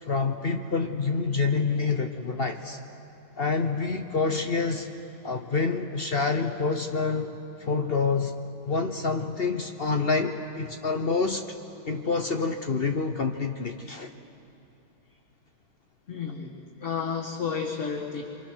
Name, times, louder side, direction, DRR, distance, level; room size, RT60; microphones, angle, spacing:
voice 1, 0.0-2.8 3.4-4.9 5.2-7.3 7.6-8.3 8.6-11.4 11.9-14.1, left 4 dB, 55° left, 6 dB, 0.6 m, -27 dB
voice 2, 16.1-18.2, left 6 dB, 35° left, -4 dB, 1.9 m, -32 dB
27.0 x 25.5 x 6.3 m, 2.7 s
omnidirectional pair, 2.2 m